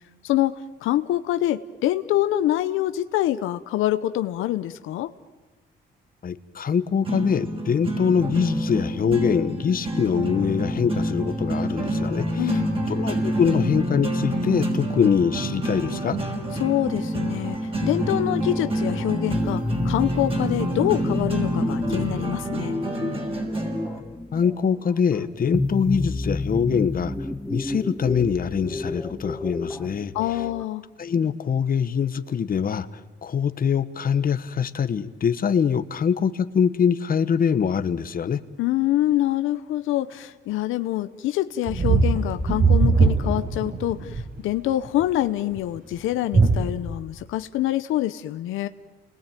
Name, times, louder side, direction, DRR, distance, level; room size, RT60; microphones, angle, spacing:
voice 1, 0.2-5.1 12.4-12.8 16.6-22.8 30.1-30.8 38.6-48.7, left 14 dB, 90° left, 11 dB, 0.9 m, -25 dB
voice 2, 6.2-12.6 12.9-16.2 24.3-27.1 27.5-30.4 31.0-38.4, left 7 dB, 45° left, 12 dB, 1.3 m, -24 dB
sound 1, 7.0-24.0, right 1 dB, 25° right, 5.4 m, -27 dB
sound 2, 18.5-30.6, left 2 dB, 5° left, 1.5 m, -31 dB
sound 3, 41.7-44.2 44.9-45.2 45.6-45.7 46.3-46.6, right 4 dB, 45° right, 4.6 m, -19 dB
29.0 x 20.5 x 9.2 m, 1.2 s
cardioid pair, 90°, 20 cm